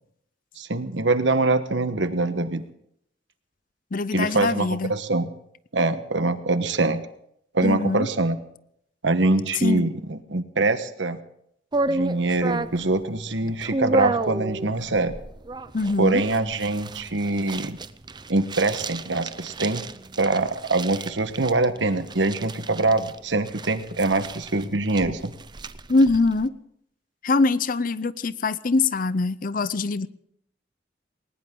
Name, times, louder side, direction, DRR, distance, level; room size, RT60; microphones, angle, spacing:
voice 1, 0.6-2.6 4.1-5.3 5.7-7.0 7.5-8.4 9.0-11.2 11.9-15.1 16.0-17.8 18.3-19.8 20.2-25.3, right 2 dB, 80° right, 10 dB, 1.3 m, -24 dB
voice 2, 3.9-4.9 7.6-8.1 9.6-9.8 15.7-16.2 25.9-26.5 27.2-30.1, left 3 dB, 45° left, 17 dB, 0.6 m, -23 dB
sound 1, 11.7-26.5, right 2 dB, 25° right, 0.6 m, -32 dB
19.5 x 19.5 x 3.8 m, 0.72 s
head